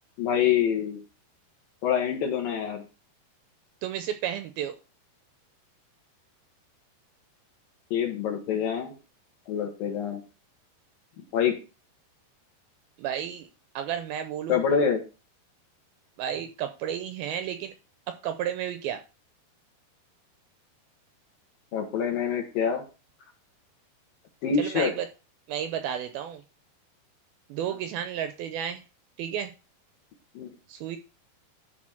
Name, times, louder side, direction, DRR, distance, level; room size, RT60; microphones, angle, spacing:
voice 1, 0.2-1.0 1.8-2.8 7.9-8.9 9.5-10.2 11.3-11.5 14.5-15.0 21.7-22.8 24.4-24.9 30.3-30.5, left 7 dB, 60° left, 2 dB, 3.2 m, -26 dB
voice 2, 3.8-4.8 13.0-13.5 13.8-14.6 16.2-17.7 18.1-19.0 24.6-25.1 25.5-26.4 27.5-28.8 29.2-29.5 30.7-31.0, right 9 dB, 85° right, 8 dB, 2.3 m, -32 dB
12.5 x 4.3 x 5.9 m, 0.32 s
omnidirectional pair, 4.9 m